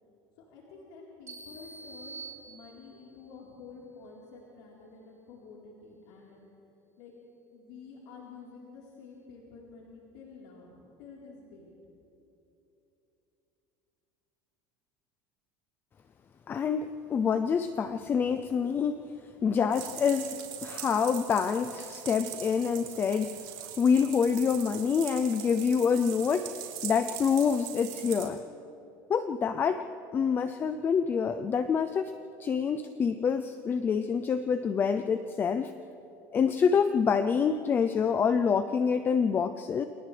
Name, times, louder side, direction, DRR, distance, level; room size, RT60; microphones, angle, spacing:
voice 1, 0.4-6.4 7.0-7.1 7.5-11.7, left 4 dB, 75° left, -5 dB, 4.0 m, -49 dB
sound 1, 1.3-3.2, right 4 dB, 30° right, 3.8 m, -46 dB
voice 2, 16.5-19.0 19.4-23.3 23.8-26.5 26.8-28.4 29.1-29.9 30.1-32.1 32.4-35.8 36.3-39.9, left 6 dB, 20° left, 9 dB, 0.4 m, -27 dB
sound 2, 19.7-28.2, right 11 dB, 70° right, 4.1 m, -41 dB
29.0 x 28.0 x 3.3 m, 3.0 s
cardioid pair, 160°, 10 cm